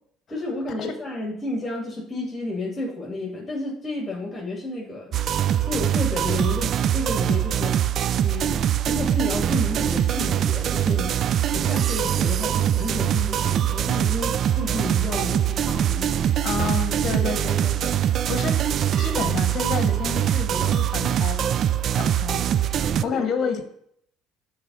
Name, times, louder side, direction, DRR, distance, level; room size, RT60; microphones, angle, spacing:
voice 1, 0.3-5.1 5.6-7.8 8.2-11.2 11.5-16.3 17.1-17.3 18.3-18.4 23.0-23.5, left 2 dB, 20° left, -3 dB, 2.5 m, -31 dB
sound 1, 5.1-23.0, right 10 dB, 55° right, 0.3 m, -23 dB
voice 2, 16.4-18.0 18.3-18.7 19.0-21.5 21.9-23.6, left 5 dB, 50° left, 7 dB, 1.1 m, -30 dB
6.7 x 4.2 x 6.2 m, 0.68 s
supercardioid pair, 70°, 0 cm